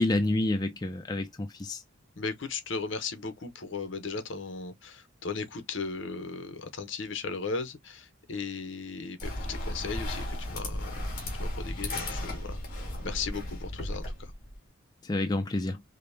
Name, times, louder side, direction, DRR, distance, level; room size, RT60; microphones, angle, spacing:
voice 1, 0.0-1.8 15.0-15.8, left 2 dB, 20° left, 0.3 m, -28 dB
voice 2, 2.2-11.0 11.4-14.3, left 4 dB, 65° left, 0.8 m, -37 dB
sound 1, 9.2-14.5, left 1 dB, 45° left, 1.6 m, -35 dB
5.1 x 2.1 x 2.6 m
head